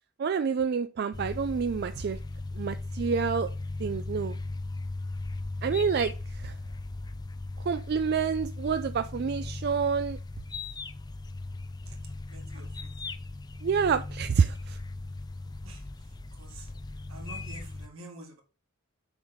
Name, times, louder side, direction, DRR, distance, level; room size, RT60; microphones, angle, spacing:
voice 1, 0.2-2.2 2.6-3.5 3.8-4.4 5.6-6.6 7.6-10.2 13.6-14.8, right 6 dB, 50° right, 0.3 m, -28 dB
sound 1, 1.1-17.9, left 2 dB, 20° left, 0.4 m, -38 dB
voice 2, 12.3-12.9 15.6-15.8 16.4-16.7 17.1-18.4, right 2 dB, 75° right, 2.1 m, -47 dB
7.0 x 4.0 x 5.0 m
head